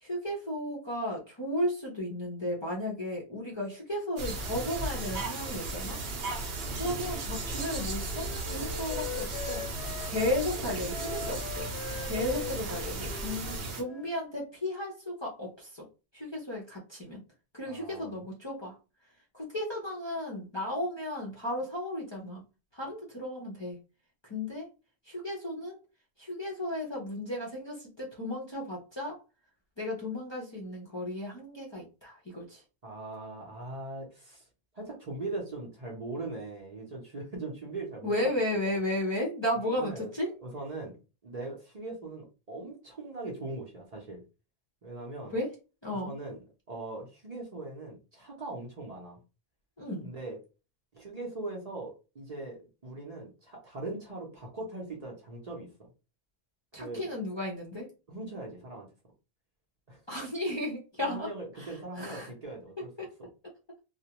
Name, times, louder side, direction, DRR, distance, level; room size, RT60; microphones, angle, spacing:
voice 1, 0.0-6.0 6.7-9.6 10.0-11.7 12.0-15.8 16.1-17.2 17.5-18.7 19.3-22.4 22.7-23.8 24.3-24.7 25.1-25.8 26.2-29.2 29.8-32.6 38.0-40.3 45.3-45.5 45.8-46.1 49.8-50.1 56.7-57.8 60.1-61.3 61.6-61.7 62.0-62.3 63.0-63.1, left 1 dB, 30° left, -4 dB, 0.5 m, -34 dB
sound 1, 4.2-13.8, right 2 dB, 70° right, 0.8 m, -35 dB
Wind instrument woodwind instrument, 7.2-10.4 10.9-14.2, left 7 dB, 90° left, 0.9 m, -42 dB
voice 2, 12.1-13.1 17.6-18.2 32.8-34.4 34.7-38.1 38.4-38.8 39.7-40.1 40.4-44.2 44.8-45.3 45.9-49.2 50.0-50.4 50.9-55.7 56.8-57.1 58.1-58.9 59.9-60.0 61.0-62.9 63.2-63.3, right 2 dB, 45° right, -1 dB, 0.7 m, -40 dB
2.3 x 2.1 x 2.8 m, 0.31 s
omnidirectional pair, 1.1 m